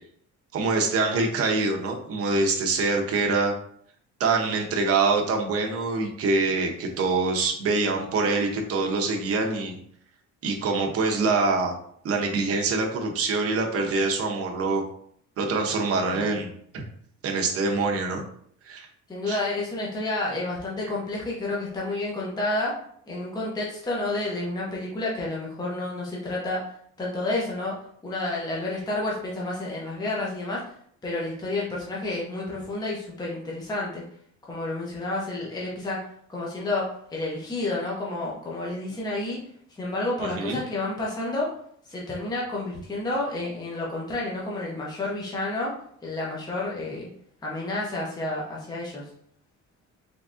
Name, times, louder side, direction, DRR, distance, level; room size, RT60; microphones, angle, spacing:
voice 1, 0.5-3.5 4.2-9.8 10.4-11.7 12.0-14.8 15.4-16.8 17.2-18.2 18.7-18.9 19.3-19.4 40.2-40.6, right 3 dB, 50° right, 2 dB, 0.7 m, -25 dB
voice 2, 19.1-22.8 23.1-26.6 27.0-27.7 28.0-30.6 31.0-34.0 34.5-36.0 36.3-39.4 39.7-41.5 41.9-45.7 46.0-47.1 47.4-49.1, left 2 dB, 15° left, -4 dB, 0.7 m, -30 dB
3.6 x 3.2 x 2.5 m, 0.65 s
cardioid pair, 145°, 32 cm